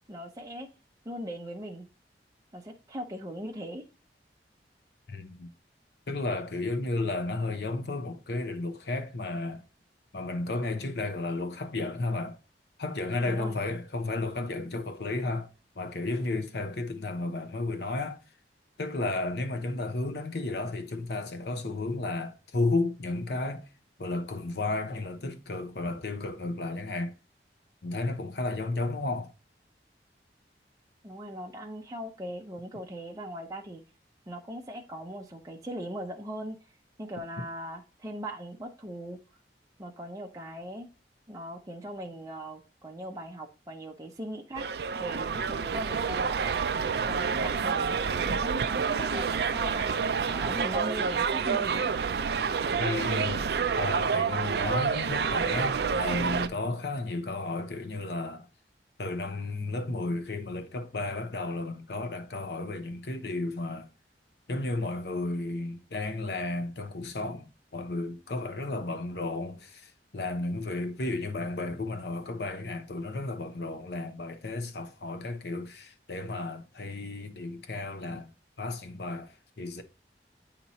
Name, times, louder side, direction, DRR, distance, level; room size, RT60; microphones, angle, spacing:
voice 1, 0.1-0.7 1.0-1.9 2.5-3.8 13.1-13.6 31.0-33.8 34.3-36.6 37.0-39.2 39.8-40.9 41.3-44.6 44.9-46.4 47.0-48.0 48.2-51.9, equal, 20° right, 0.6 m, -39 dB
voice 2, 5.1-5.5 6.1-9.6 10.1-12.4 12.8-15.5 15.8-18.2 18.8-23.7 24.0-27.1 27.8-29.3 52.8-58.5 59.0-63.9 64.5-78.3 78.6-79.8, left 2 dB, 65° left, 0.8 m, -33 dB
sound 1, 44.6-56.5, right 6 dB, 65° right, 0.4 m, -28 dB
8.8 x 2.9 x 4.1 m
head